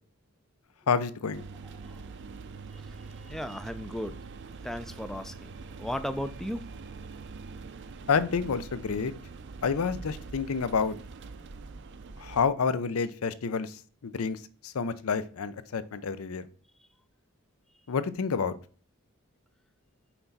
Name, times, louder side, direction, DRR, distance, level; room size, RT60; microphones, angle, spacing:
voice 1, 0.9-1.4 8.1-9.1 9.6-11.0 12.2-13.7 14.0-16.5 17.9-18.5, left 5 dB, 80° left, 0.5 m, -29 dB
sound 1, 1.3-12.5, right 4 dB, 55° right, 0.5 m, -44 dB
voice 2, 1.6-2.0 2.7-4.2 4.6-5.5 5.8-6.7, equal, ahead, 0.3 m, -36 dB
5.9 x 4.4 x 4.0 m
head